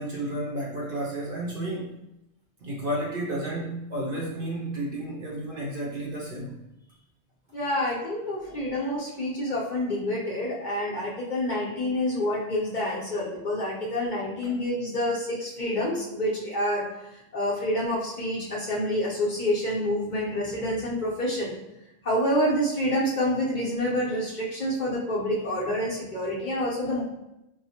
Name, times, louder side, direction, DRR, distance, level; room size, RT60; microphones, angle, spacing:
voice 1, 0.0-1.9 2.6-6.6 8.5-8.6 14.4-14.6, right 1 dB, 60° right, -3 dB, 0.6 m, -32 dB
voice 2, 7.5-16.9 17.1-21.6 22.0-27.0, left 1 dB, 45° left, -5 dB, 0.8 m, -28 dB
4.5 x 2.0 x 2.8 m, 0.89 s
omnidirectional pair, 1.2 m